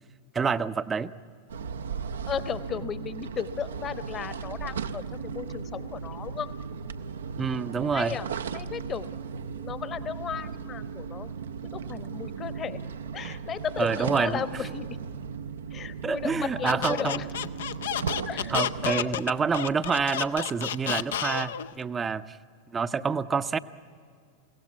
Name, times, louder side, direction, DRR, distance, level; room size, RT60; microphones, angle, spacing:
voice 1, 0.3-1.1 7.4-8.2 13.8-14.4 16.0-17.3 18.5-22.4 22.7-23.6, right 5 dB, 20° right, 13 dB, 0.7 m, -27 dB
sound 1, 1.5-18.9, right 6 dB, 65° right, 0.7 m, -36 dB
voice 2, 2.3-6.5 7.9-9.1 9.5-11.4 11.7-12.8 13.1-15.0 15.7-17.3 18.3-19.2, left 7 dB, 25° left, 13 dB, 1.1 m, -35 dB
Squeak, 16.6-21.7, left 10 dB, 60° left, 0.6 m, -30 dB
23.5 x 17.0 x 9.4 m, 2.2 s
figure-of-eight pair, 90°, 0 cm